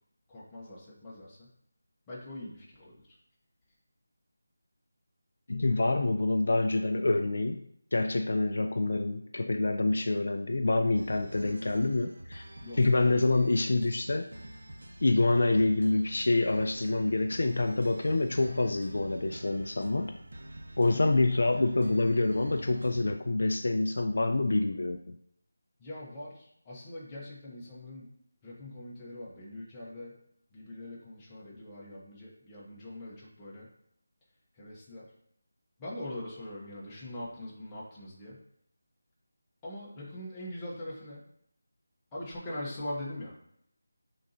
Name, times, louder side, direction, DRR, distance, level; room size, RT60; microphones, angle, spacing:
voice 1, 0.3-1.5 2.1-3.1 12.6-12.8 20.9-21.1 25.8-28.1 28.4-30.2 30.5-33.7 34.6-35.1 35.8-38.4 39.6-41.2 42.1-43.3, left 1 dB, 10° left, -7 dB, 0.8 m, -42 dB
voice 2, 5.5-7.6 7.9-12.4 12.8-14.3 15.0-20.1 20.8-25.2, left 2 dB, 50° left, 6 dB, 0.3 m, -27 dB
sound 1, 10.9-23.1, right 1 dB, 70° right, 0.5 m, -47 dB
5.4 x 3.8 x 2.6 m, 0.70 s
figure-of-eight pair, 180°, 0 cm